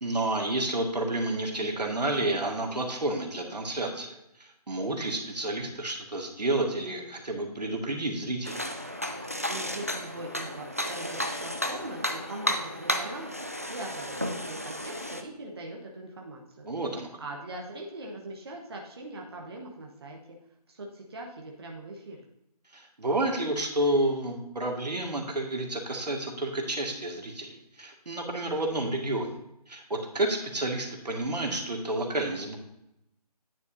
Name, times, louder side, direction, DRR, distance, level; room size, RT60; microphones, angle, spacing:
voice 1, 0.0-4.1 4.4-8.6 16.7-17.1 22.7-29.3 29.7-32.6, right 1 dB, 85° right, 2 dB, 1.9 m, -30 dB
sound 1, 8.4-15.2, left 1 dB, 25° right, 0.3 m, -33 dB
voice 2, 9.5-13.3 13.7-16.7 17.2-20.4 20.7-22.2, right 2 dB, 40° right, 0 dB, 1.1 m, -41 dB
9.5 x 8.3 x 2.6 m, 0.84 s
figure-of-eight pair, 170°, 21 cm